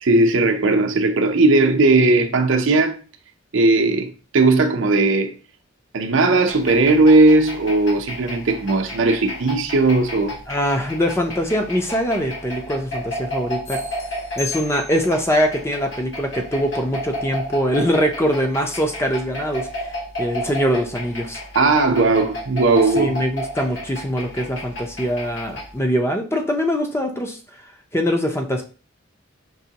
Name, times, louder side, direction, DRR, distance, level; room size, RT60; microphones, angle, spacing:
voice 1, 0.0-3.0 3.5-5.3 5.9-10.4 21.5-23.1, right 2 dB, 70° right, 0.6 m, -17 dB
sound 1, 6.5-25.8, equal, 60° left, 1.5 m, -33 dB
voice 2, 10.5-13.8 14.4-19.7 20.2-21.4 22.9-27.4 27.9-28.6, equal, 15° left, 0.5 m, -22 dB
sound 2, 13.6-15.3, left 7 dB, 90° left, 2.0 m, -35 dB
5.4 x 3.0 x 2.8 m
head